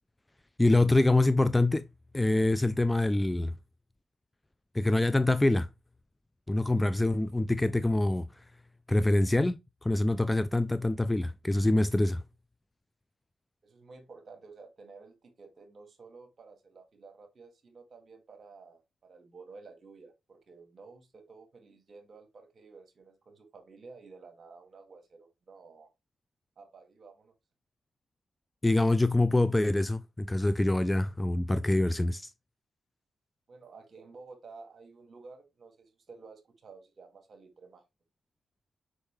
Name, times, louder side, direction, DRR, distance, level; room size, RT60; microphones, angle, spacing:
voice 1, 0.6-1.8 2.1-3.5 4.7-5.7 6.5-8.4 8.9-12.2 28.6-32.3, left 2 dB, 15° left, 0.5 m, -25 dB
voice 2, 13.6-25.9 26.6-27.3 33.5-37.8, right 4 dB, 55° right, 2.3 m, -52 dB
6.4 x 5.5 x 3.3 m
supercardioid pair, 50°, 0 cm